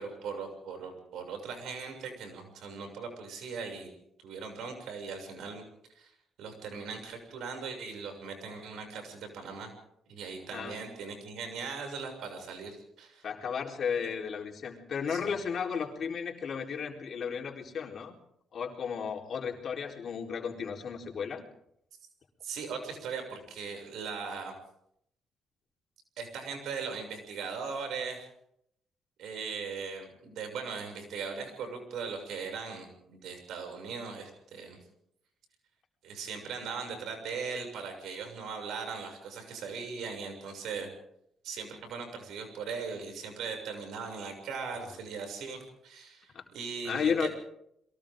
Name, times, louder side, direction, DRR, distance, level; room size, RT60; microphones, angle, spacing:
voice 1, 0.0-3.9 4.2-5.6 5.9-6.1 6.4-9.7 10.1-13.2 14.0-14.1 15.1-15.4 22.4-24.5 26.2-28.3 29.2-34.8 36.0-40.9 41.4-47.3, right 5 dB, 80° right, 4 dB, 6.9 m, -39 dB
voice 2, 13.2-18.1 18.5-21.4 46.3-46.4 46.8-47.3, left 6 dB, 55° left, 1 dB, 4.1 m, -34 dB
30.0 x 22.5 x 3.8 m, 0.74 s
cardioid pair, 90°, 0 cm